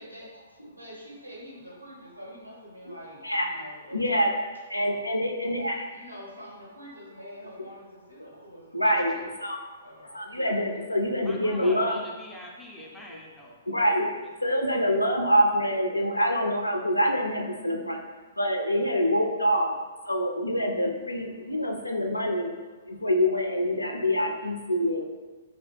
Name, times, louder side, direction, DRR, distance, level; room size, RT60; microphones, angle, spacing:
voice 1, 0.8-4.3 4.7-5.1 5.9-9.0 9.8-10.8, equal, 90° right, -4 dB, 1.0 m, -46 dB
voice 2, 3.9-4.3 4.7-5.9 8.7-9.7 10.1-12.0 13.1-13.2 13.7-14.1 14.4-18.0 18.4-19.7 20.1-22.5 22.9-25.0, equal, 85° left, 2 dB, 0.4 m, -25 dB
voice 3, 8.8-9.3 11.2-13.6, equal, 5° left, -4 dB, 0.5 m, -44 dB
3.0 x 2.7 x 3.3 m, 1.3 s
figure-of-eight pair, 115°, 0 cm